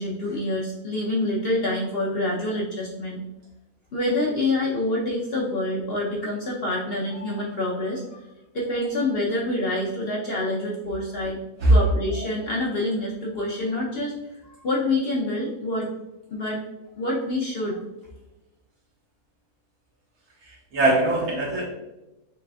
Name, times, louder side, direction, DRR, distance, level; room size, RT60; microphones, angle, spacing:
voice 1, 0.0-3.2 3.9-8.2 8.5-11.4 11.7-14.2 14.4-15.9 16.3-16.6 17.0-17.8, left 1 dB, 55° left, -3 dB, 0.7 m, -26 dB
voice 2, 20.5-21.6, right 2 dB, 75° right, -3 dB, 1.5 m, -21 dB
6.5 x 2.5 x 2.3 m, 0.97 s
omnidirectional pair, 1.6 m